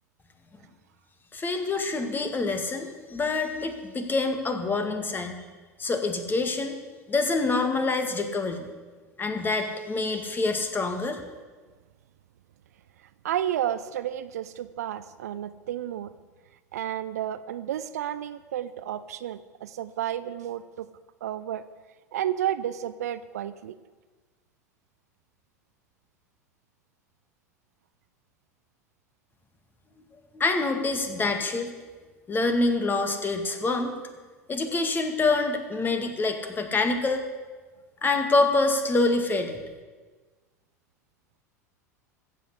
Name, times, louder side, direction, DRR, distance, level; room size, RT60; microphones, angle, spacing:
voice 1, 1.3-5.4 5.8-6.8 7.1-8.7 9.2-11.2 30.3-31.7 32.3-33.9 34.5-37.3 38.0-39.6, left 3 dB, 20° left, 6 dB, 2.1 m, -26 dB
voice 2, 13.2-16.1 16.7-20.9 21.2-21.6 22.1-23.7, right 11 dB, 70° right, 14 dB, 0.6 m, -31 dB
15.0 x 7.8 x 8.3 m, 1.3 s
figure-of-eight pair, 80°, 9 cm